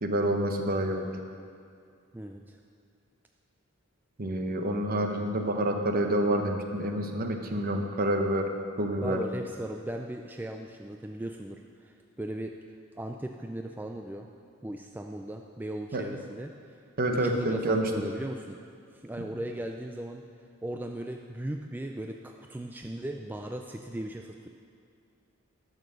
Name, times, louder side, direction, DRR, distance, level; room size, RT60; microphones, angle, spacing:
voice 1, 0.0-1.1 4.2-8.5 8.8-9.2 15.9-16.0 17.0-17.9, right 1 dB, 45° right, 4 dB, 0.9 m, -28 dB
voice 2, 2.1-2.6 9.0-12.6 13.0-14.3 14.6-16.8 17.1-18.6 18.9-20.3 20.6-24.5, right 1 dB, 10° right, 3 dB, 0.3 m, -37 dB
10.5 x 6.6 x 6.3 m, 2.3 s
head